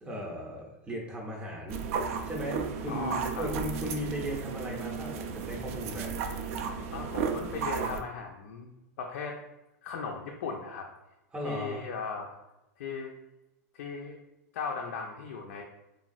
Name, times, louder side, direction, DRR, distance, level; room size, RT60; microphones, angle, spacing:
voice 1, 0.0-1.8 2.2-6.2 11.3-11.8, equal, 10° right, -2 dB, 0.6 m, -36 dB
sound 1, 1.7-8.0, right 6 dB, 60° right, 0.4 m, -34 dB
voice 2, 2.9-3.4 6.9-8.7 9.0-9.4 9.8-10.9 11.4-12.4 12.8-13.1 13.7-14.2 14.5-15.6, left 5 dB, 75° left, 1 dB, 0.4 m, -37 dB
3.0 x 2.3 x 2.5 m, 0.95 s
supercardioid pair, 130°, 9 cm